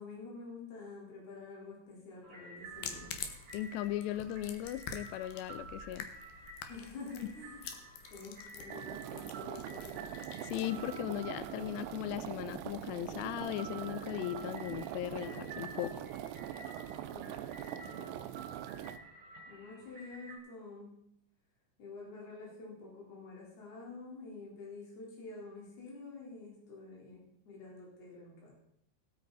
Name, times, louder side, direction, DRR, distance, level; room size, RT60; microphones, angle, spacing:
voice 1, 0.0-3.1 6.7-7.7 8.1-10.1 17.1-17.4 17.7-18.3 19.5-21.0 21.8-28.5, left 3 dB, 55° left, -4 dB, 5.8 m, -48 dB
sound 1, 2.2-20.4, right 3 dB, 45° right, 5.2 m, -51 dB
sound 2, 2.6-13.4, left 6 dB, 70° left, 2.3 m, -49 dB
voice 2, 3.5-6.1 10.4-16.1, left 13 dB, 90° left, 13 dB, 2.4 m, -38 dB
sound 3, 8.7-19.0, right 12 dB, 80° right, 2.5 m, -43 dB
19.0 x 8.6 x 4.1 m, 0.75 s
omnidirectional pair, 5.5 m